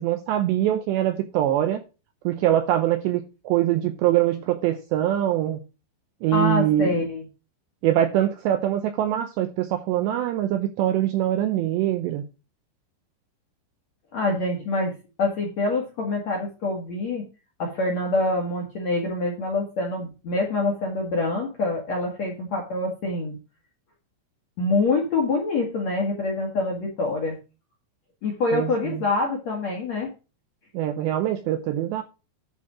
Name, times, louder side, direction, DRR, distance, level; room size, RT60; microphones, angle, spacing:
voice 1, 0.0-1.8 2.2-5.6 6.2-6.9 7.8-12.2 28.5-29.0 30.7-32.0, right 12 dB, 80° right, 2.5 m, -23 dB
voice 2, 6.3-7.2 14.1-17.2 17.6-23.4 24.6-27.4 28.2-30.1, left 2 dB, 55° left, 1.9 m, -25 dB
11.0 x 4.6 x 6.1 m
omnidirectional pair, 5.8 m